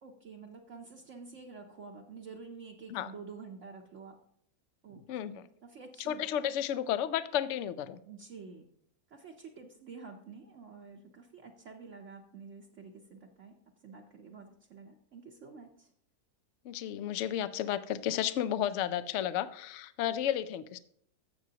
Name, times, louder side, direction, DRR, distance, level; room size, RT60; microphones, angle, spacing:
voice 1, 0.0-4.2 4.8-6.2 8.0-8.7 9.1-13.6 13.8-15.9, right 5 dB, 55° right, 1 dB, 1.0 m, -49 dB
voice 2, 6.1-8.0 16.6-20.8, left 10 dB, 65° left, 13 dB, 0.8 m, -32 dB
15.0 x 6.1 x 2.8 m, 0.67 s
omnidirectional pair, 1.6 m